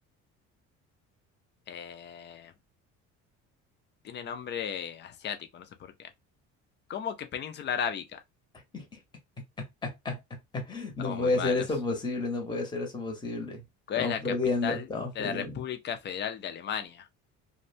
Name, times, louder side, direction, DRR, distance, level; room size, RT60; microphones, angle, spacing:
voice 1, 1.7-2.5 4.0-5.7 6.0-6.1 6.9-8.2 11.0-11.6 13.9-14.2 14.6-14.9 15.2-17.0, left 8 dB, 35° left, 0.5 m, -34 dB
voice 2, 9.6-10.2 10.5-13.6 14.0-15.6, left 3 dB, 15° left, 0.9 m, -31 dB
2.6 x 2.2 x 2.6 m
cardioid pair, 125°, 29 cm